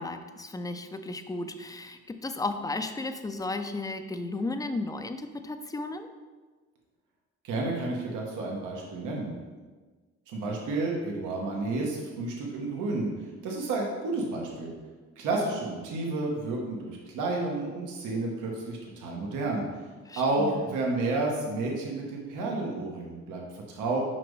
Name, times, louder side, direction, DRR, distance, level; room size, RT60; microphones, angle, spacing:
voice 1, 0.0-6.1 20.1-20.7, left 2 dB, 10° left, 8 dB, 0.4 m, -34 dB
voice 2, 7.4-9.4 10.3-13.1 13.4-14.7 15.2-19.7 20.2-24.0, right 2 dB, 85° right, -1 dB, 1.2 m, -31 dB
5.8 x 5.2 x 3.2 m, 1.4 s
cardioid pair, 90°, 30 cm